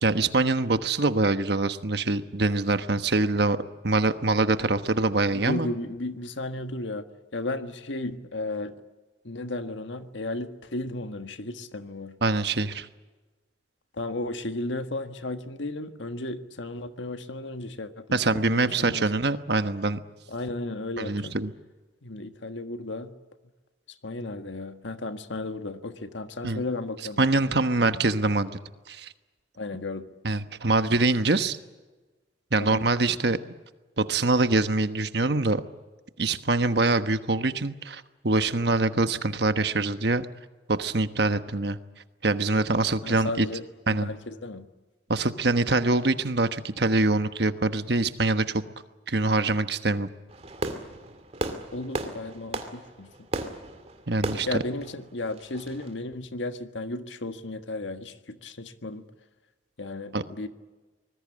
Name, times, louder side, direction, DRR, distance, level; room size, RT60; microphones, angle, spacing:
voice 1, 0.0-3.6 3.8-5.7 12.2-12.9 18.1-20.0 21.0-21.5 26.4-26.6 27.2-28.5 28.9-29.1 30.2-31.6 32.5-33.4 34.0-35.6 36.2-40.3 40.7-41.8 42.2-43.5 43.9-44.1 45.1-48.6 49.1-50.1 54.1-54.5 60.1-60.2, right 2 dB, 60° right, 10 dB, 1.2 m, -24 dB
voice 2, 5.3-7.0 7.3-8.7 9.2-12.2 13.9-19.1 20.3-21.3 22.0-23.2 23.9-27.3 29.5-30.1 32.6-32.8 43.0-43.6 43.9-44.7 51.7-53.1 54.5-59.0 59.8-60.5, left 2 dB, 80° left, 8 dB, 1.6 m, -34 dB
Fireworks, 50.3-55.9, right 2 dB, 35° right, 2.4 m, -35 dB
25.5 x 20.0 x 8.7 m, 1.2 s
head